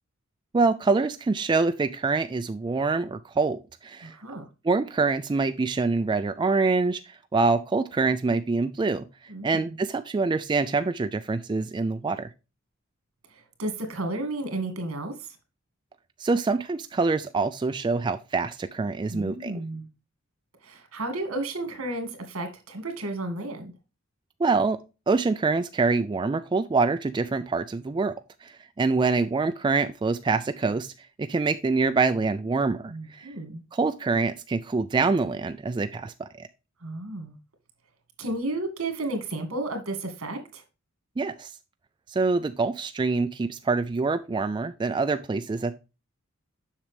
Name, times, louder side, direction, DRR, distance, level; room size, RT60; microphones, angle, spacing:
voice 1, 0.5-4.1 4.6-7.0 7.3-9.0 9.4-12.3 16.2-19.6 24.4-24.8 25.1-28.1 28.4-30.9 31.2-33.3 33.7-36.5 41.2-41.5 42.1-45.7, right 4 dB, 20° right, 0.3 m, -25 dB
voice 2, 4.0-4.4 9.3-9.8 13.6-15.1 19.1-19.9 20.6-23.7 32.9-33.6 36.8-37.4 38.2-40.6, right 2 dB, 80° right, 2.1 m, -32 dB
7.2 x 6.0 x 3.3 m
head